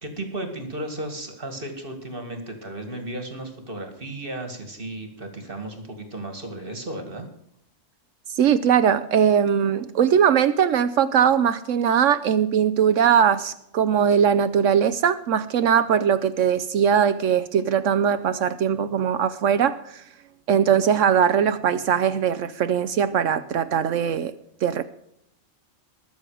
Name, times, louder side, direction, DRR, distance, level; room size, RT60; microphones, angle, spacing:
voice 1, 0.0-7.3, right 1 dB, 45° right, 6 dB, 2.3 m, -34 dB
voice 2, 8.3-20.0 20.5-24.3 24.6-24.8, right 8 dB, 70° right, 13 dB, 1.0 m, -20 dB
21.0 x 7.0 x 4.9 m, 0.73 s
omnidirectional pair, 1.4 m